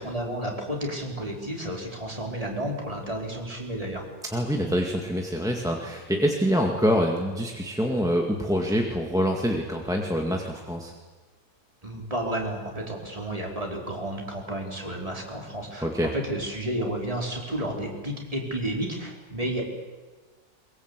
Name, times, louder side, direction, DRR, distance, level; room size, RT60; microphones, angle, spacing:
voice 1, 0.0-4.1 11.8-19.6, right 1 dB, 20° right, -1 dB, 4.5 m, -31 dB
voice 2, 4.3-10.9 15.8-16.1, equal, ahead, 1 dB, 1.9 m, -25 dB
23.0 x 22.5 x 8.3 m, 1.3 s
omnidirectional pair, 1.9 m